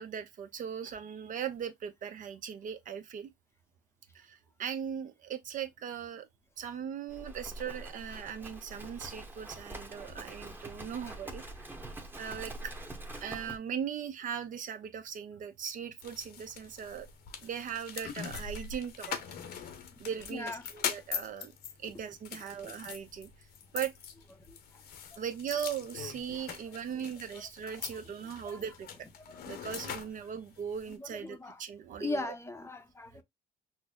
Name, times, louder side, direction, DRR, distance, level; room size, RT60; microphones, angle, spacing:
voice 1, 0.0-3.3 4.1-6.3 6.6-11.4 12.2-12.9 13.2-17.1 17.4-19.6 20.0-21.5 21.8-23.3 23.7-23.9 25.2-28.9 29.5-32.3, right 8 dB, 50° right, 0.7 m, -39 dB
Livestock farm animals working animals, 7.1-13.6, right 1 dB, 10° right, 1.0 m, -45 dB
sound 1, 16.0-31.0, left 7 dB, 70° left, 1.0 m, -42 dB
voice 2, 20.3-20.6 22.4-22.8 24.5-24.8 25.1-25.2 28.4-28.6 29.3-29.6 31.0-31.6 32.0-33.2, left 2 dB, 15° left, 0.7 m, -40 dB
5.9 x 2.1 x 2.2 m
cardioid pair, 110°, 17 cm